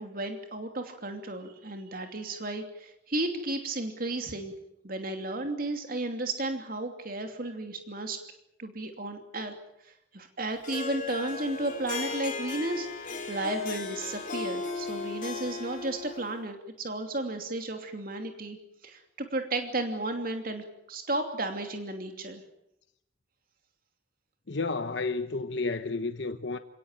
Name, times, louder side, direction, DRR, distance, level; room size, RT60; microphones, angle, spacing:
voice 1, 0.0-4.5 4.8-8.2 8.6-9.5 9.8-18.6 18.8-22.4, right 2 dB, 50° right, 2.8 m, -34 dB
Harp, 10.6-16.5, left 4 dB, 45° left, 5.1 m, -36 dB
voice 2, 24.5-26.6, left 3 dB, 65° left, 1.1 m, -31 dB
28.5 x 18.0 x 9.1 m
head